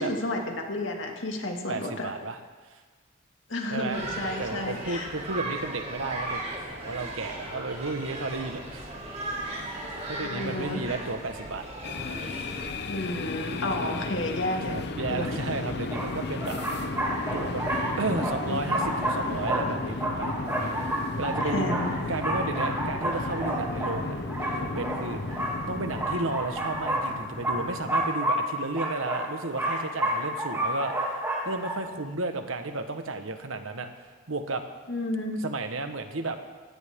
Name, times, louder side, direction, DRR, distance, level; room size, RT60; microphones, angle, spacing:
voice 1, 0.0-2.1 3.5-5.1 10.2-10.8 12.9-15.4 18.4-18.6 21.4-21.9 34.9-35.4, left 1 dB, 70° left, 2 dB, 2.2 m, -32 dB
voice 2, 1.7-2.4 3.7-4.0 4.4-8.9 10.1-11.7 13.7-14.1 14.6-16.6 16.8-16.9 17.3-17.6 18.0-20.8 21.2-21.8 22.1-24.3 24.5-25.4 25.7-30.9 31.4-33.9 34.3-34.6 35.4-36.4, right 3 dB, 85° right, 7 dB, 1.3 m, -33 dB
sound 1, 3.9-12.7, right 1 dB, 30° right, 3.8 m, -36 dB
sound 2, 11.8-28.1, left 3 dB, 55° left, 0.8 m, -34 dB
sound 3, 15.1-15.2 15.9-31.8, right 1 dB, 15° right, 2.6 m, -30 dB
18.0 x 17.0 x 3.7 m, 1.4 s
head